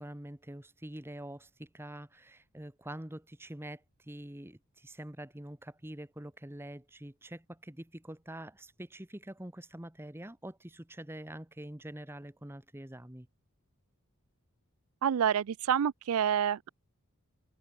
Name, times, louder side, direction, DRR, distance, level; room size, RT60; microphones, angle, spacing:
voice 1, 0.0-13.3, right 1 dB, 10° right, 1.1 m, -45 dB
voice 2, 15.0-16.7, right 8 dB, 80° right, 0.4 m, -28 dB
open air
head